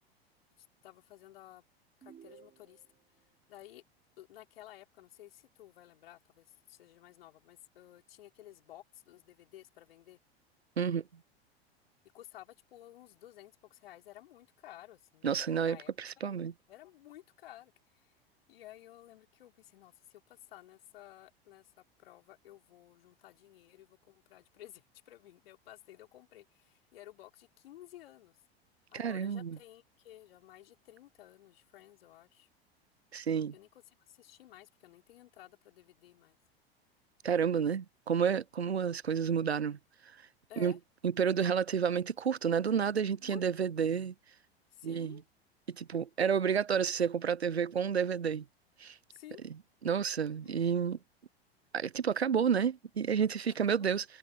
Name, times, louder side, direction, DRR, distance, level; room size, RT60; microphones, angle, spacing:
voice 1, 0.6-1.6 2.0-2.8 3.5-3.8 4.2-10.2 12.1-15.3 15.6-15.9 16.2-16.4 16.7-18.1 18.5-28.4 28.9-32.5 33.5-36.4 40.5-40.8 43.1-43.7 44.7-45.2 49.1-49.4 50.4-50.5 53.6-53.9, left 14 dB, 65° left, 4.1 m, -54 dB
sound 1, 2.0-3.0, right 8 dB, 30° right, 4.9 m, -56 dB
voice 2, 15.2-16.5 28.9-29.5 33.1-33.5 37.2-39.8 40.6-40.7 41.0-44.1 44.8-45.2 45.7-48.4 48.8-48.9 49.8-51.0 51.7-54.0, right 7 dB, 90° right, 0.7 m, -30 dB
figure-of-eight pair, 85°, 31 cm